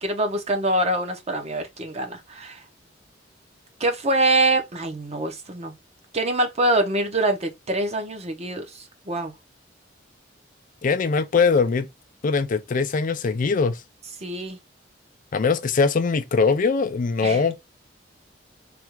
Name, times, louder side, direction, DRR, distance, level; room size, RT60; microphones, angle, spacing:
voice 1, 0.0-2.6 3.8-5.7 6.1-9.3 14.2-14.6 17.2-17.4, right 1 dB, 35° right, 0.8 m, -24 dB
voice 2, 10.8-11.9 12.2-13.8 15.3-17.6, left 4 dB, 45° left, 0.4 m, -21 dB
3.4 x 2.4 x 4.5 m
head